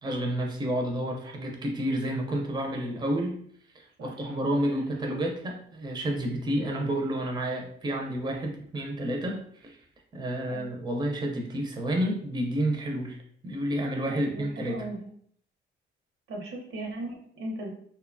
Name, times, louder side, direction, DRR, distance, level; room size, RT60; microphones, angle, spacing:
voice 1, 0.0-3.4 3.7-9.8 10.1-14.9, right 1 dB, 20° right, 1 dB, 0.5 m, -30 dB
voice 2, 4.0-4.4 4.7-4.8 10.5-10.6 14.1-15.0 16.3-17.7, right 1 dB, 85° right, 0 dB, 0.8 m, -38 dB
2.6 x 2.2 x 2.4 m, 0.62 s
cardioid pair, 90°, 20 cm